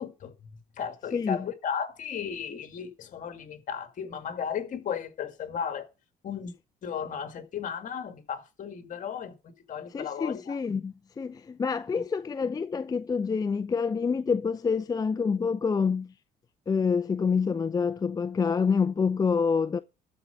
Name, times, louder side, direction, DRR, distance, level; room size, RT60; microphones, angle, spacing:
voice 1, 0.0-5.9 6.2-6.5 6.8-10.6, left 7 dB, 50° left, 1.9 m, -35 dB
voice 2, 1.1-1.4 9.9-16.1 16.7-19.8, left 5 dB, 20° left, 0.5 m, -27 dB
12.5 x 4.7 x 6.6 m
cardioid pair, 110°, 17 cm